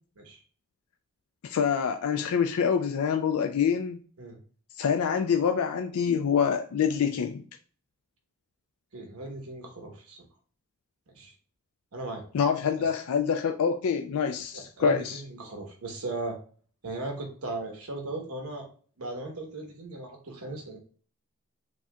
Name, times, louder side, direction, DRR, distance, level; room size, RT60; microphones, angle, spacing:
voice 1, 1.4-4.0 4.8-7.4 12.3-15.2, left 7 dB, 90° left, 6 dB, 0.4 m, -26 dB
voice 2, 8.9-10.2 11.1-11.3 11.9-12.2 12.8-12.9 14.5-16.4 16.8-18.7 19.0-20.8, right 2 dB, 85° right, 2 dB, 1.2 m, -37 dB
6.4 x 2.8 x 2.3 m, 0.43 s
head